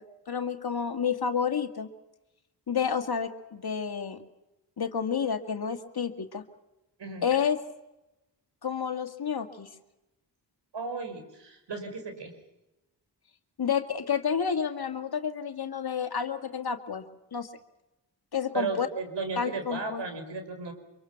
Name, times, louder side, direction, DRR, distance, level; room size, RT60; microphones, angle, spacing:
voice 1, 0.0-1.9 2.7-4.2 4.8-6.4 7.2-7.6 8.6-9.7 13.6-17.0 17.3-17.5 18.3-18.9 19.4-20.0, left 7 dB, 60° left, 6 dB, 2.2 m, -30 dB
voice 2, 10.7-12.3 18.5-20.7, right 4 dB, 75° right, 6 dB, 5.5 m, -35 dB
25.5 x 23.5 x 6.0 m, 0.96 s
cardioid pair, 50°, 43 cm